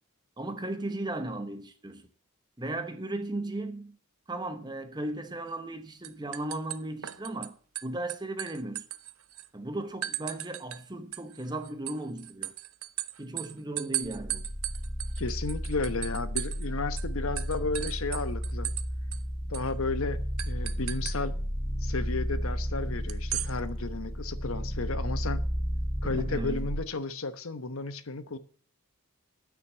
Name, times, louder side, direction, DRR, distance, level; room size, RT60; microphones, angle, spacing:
voice 1, 0.4-2.1 2.6-4.0 4.3-7.6 7.8-8.8 9.5-12.5 13.2-14.5 26.0-26.7, right 2 dB, 20° right, 0.9 m, -36 dB
sound 1, 5.5-5.8 6.0-7.5 7.8-9.5 10.0-10.8 11.1-16.7 17.0-17.1 17.4-18.9 19.1-19.2 19.5-19.7 20.4-21.2 23.1-23.5, right 14 dB, 70° right, 0.7 m, -36 dB
sound 2, 14.0-26.7, equal, 15° left, 3.8 m, -33 dB
voice 2, 15.2-18.7 19.5-21.3 21.8-25.4 26.0-28.4, left 3 dB, 70° left, 1.1 m, -33 dB
9.8 x 9.1 x 7.3 m
head